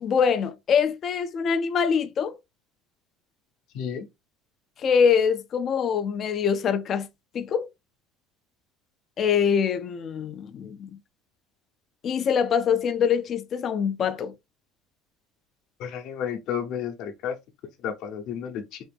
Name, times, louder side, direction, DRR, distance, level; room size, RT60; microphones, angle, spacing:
voice 1, 0.0-2.4 4.8-7.1 7.3-7.7 9.2-10.9 12.0-14.3, left 7 dB, 30° left, 0.4 m, -24 dB
voice 2, 15.8-17.3 17.8-18.6, left 8 dB, 50° left, 0.8 m, -31 dB
3.8 x 2.5 x 3.4 m
cardioid pair, 160°, 0 cm